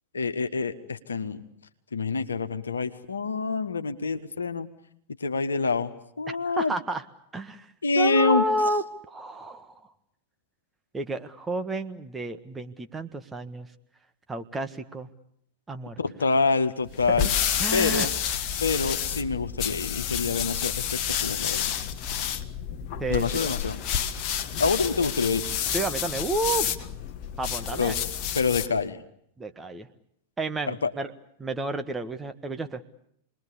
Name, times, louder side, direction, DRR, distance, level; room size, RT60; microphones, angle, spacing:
voice 1, 0.1-1.4 1.9-4.7 5.2-6.7 7.8-8.4 16.0-17.3 17.7-18.1 18.6-21.7 23.1-23.8 24.6-25.4 27.8-27.9 28.4-29.0 30.7-30.9, left 4 dB, 75° left, 8 dB, 1.6 m, -26 dB
voice 2, 6.3-7.0 7.3-9.8 10.9-13.7 14.3-15.1 15.7-16.0 17.6-18.1 23.0-23.5 25.7-26.8 27.4-28.0 29.4-29.9 30.4-31.1 31.4-32.8, right 2 dB, 15° right, 7 dB, 1.6 m, -31 dB
sound 1, 16.9-28.8, left 9 dB, 40° left, 1.5 m, -29 dB
28.5 x 21.0 x 8.5 m, 0.71 s
figure-of-eight pair, 90°, 0 cm